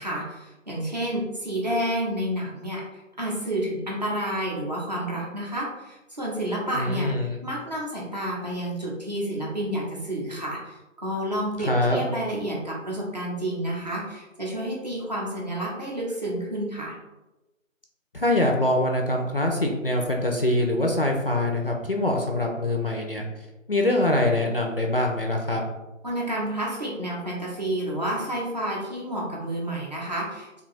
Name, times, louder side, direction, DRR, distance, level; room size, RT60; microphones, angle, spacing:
voice 1, 0.0-2.8 3.2-7.1 7.4-17.0 26.0-30.6, right 1 dB, 35° right, -4 dB, 0.7 m, -30 dB
voice 2, 6.7-7.4 11.6-12.1 18.1-23.2 23.7-25.6, left 1 dB, 45° left, 1 dB, 0.4 m, -24 dB
2.7 x 2.3 x 4.0 m, 1.0 s
figure-of-eight pair, 155°, 39 cm